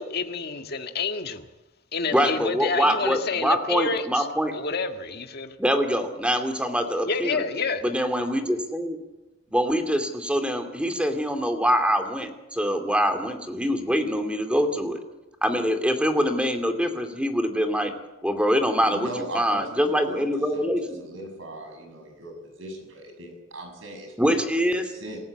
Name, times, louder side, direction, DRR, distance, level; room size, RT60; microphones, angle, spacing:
voice 1, 0.0-1.5 1.9-4.2 4.5-5.6 7.0-7.8, left 4 dB, 50° left, 6 dB, 1.7 m, -29 dB
voice 2, 2.1-4.5 5.6-7.4 7.8-9.0 9.5-15.0 15.4-17.9 18.2-21.0 24.2-24.9, equal, 5° right, 5 dB, 2.5 m, -24 dB
voice 3, 18.8-20.7 21.0-25.2, right 1 dB, 70° right, 4 dB, 7.1 m, -39 dB
27.0 x 14.5 x 8.4 m, 1.0 s
head